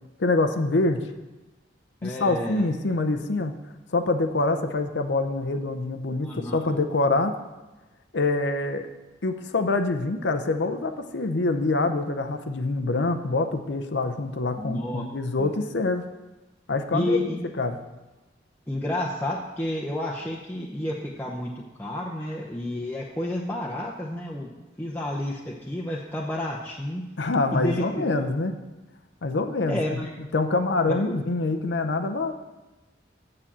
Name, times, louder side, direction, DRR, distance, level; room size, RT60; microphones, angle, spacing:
voice 1, 0.2-1.0 2.0-3.5 3.9-7.3 8.1-8.9 9.2-16.0 16.7-17.2 17.6-17.8 27.2-28.5 29.2-30.1 30.3-32.3, left 2 dB, 75° left, 7 dB, 0.7 m, -25 dB
voice 2, 2.0-2.7 6.2-6.6 14.6-15.0 15.4-15.5 16.9-17.5 18.7-21.5 21.8-24.5 24.8-27.0 27.5-28.2 29.7-30.1 30.9-31.0, left 1 dB, 10° left, -4 dB, 0.7 m, -30 dB
7.6 x 6.9 x 7.2 m, 1.1 s
head